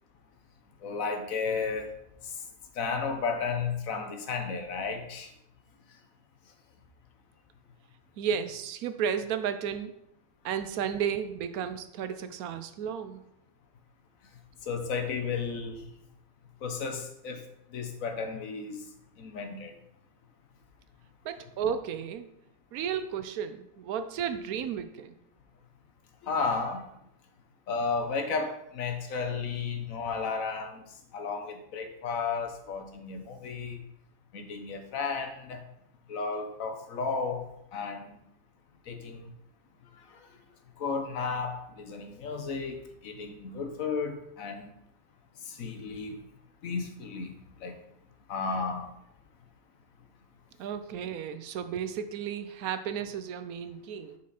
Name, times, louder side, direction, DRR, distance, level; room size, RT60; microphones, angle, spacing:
voice 1, 0.8-1.9 2.2-2.3 2.7-5.3 14.6-15.8 16.6-17.5 17.7-18.8 19.2-19.7 26.2-26.9 27.7-30.8 31.1-33.8 34.3-35.6 36.1-37.5 37.7-38.2 38.9-39.3 40.1-40.3 40.8-44.7 45.4-46.2 46.6-47.8 48.3-48.9, left 5 dB, 70° left, 5 dB, 1.3 m, -33 dB
voice 2, 8.2-9.9 10.4-13.2 21.2-22.3 22.7-25.2 50.6-54.2, right 8 dB, 90° right, 10 dB, 1.1 m, -33 dB
6.3 x 5.7 x 4.0 m, 0.77 s
omnidirectional pair, 1.5 m